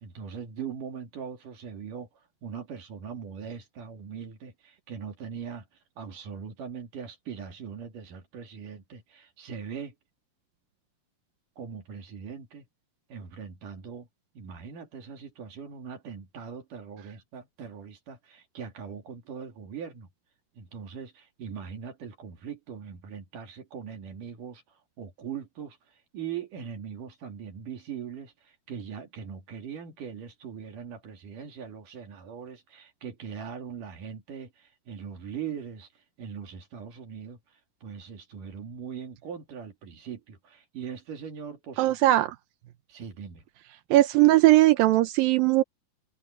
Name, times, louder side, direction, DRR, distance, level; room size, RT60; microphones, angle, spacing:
voice 1, 0.0-2.1 2.4-5.6 6.0-10.0 11.6-12.7 13.1-14.1 14.4-20.1 20.6-24.6 25.0-25.8 26.1-35.9 36.2-37.4 37.8-42.0 42.9-43.4, right 7 dB, 65° right, 4.1 m, -40 dB
voice 2, 41.8-42.4 43.9-45.6, right 17 dB, 85° right, 2.6 m, -19 dB
omnidirectional pair, 4.0 m